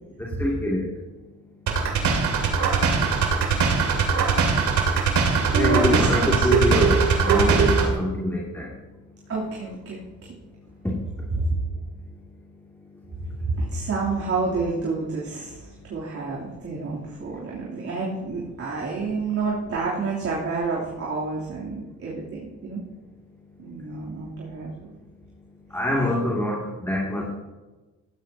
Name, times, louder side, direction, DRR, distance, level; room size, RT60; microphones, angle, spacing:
voice 1, 0.2-0.9 5.5-8.7 10.8-10.9 25.7-27.2, left 1 dB, 10° left, -4 dB, 2.5 m, -25 dB
sound 1, 1.7-7.9, right 5 dB, 75° right, 2.6 m, -21 dB
voice 2, 5.5-6.5 9.3-10.0 11.4-11.5 13.5-22.8 23.6-24.9, right 3 dB, 50° right, -6 dB, 3.2 m, -29 dB
15.5 x 12.0 x 2.8 m, 1.2 s
cardioid pair, 90°, 30 cm